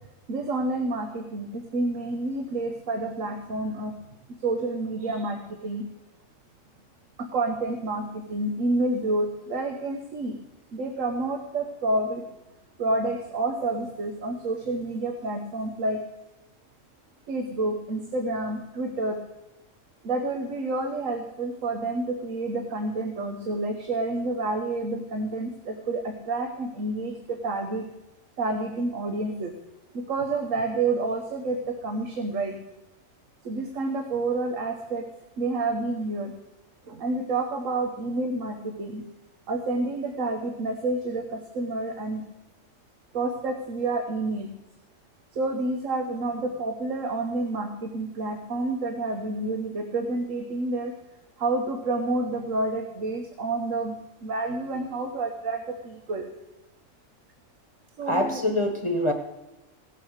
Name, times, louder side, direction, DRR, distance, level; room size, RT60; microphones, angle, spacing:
voice 1, 0.3-3.9 4.4-5.8 7.2-10.4 10.7-12.2 12.8-16.0 17.3-19.2 20.0-27.8 28.4-29.5 29.9-32.5 33.4-35.0 35.4-36.3 36.9-39.0 39.5-42.2 43.1-44.5 45.3-50.9 51.4-53.9 54.2-56.3 58.0-58.4, right 2 dB, 90° right, 4 dB, 1.5 m, -29 dB
voice 2, 58.1-59.1, left 1 dB, 25° left, 5 dB, 1.1 m, -24 dB
16.5 x 7.6 x 6.5 m, 0.98 s
omnidirectional pair, 1.3 m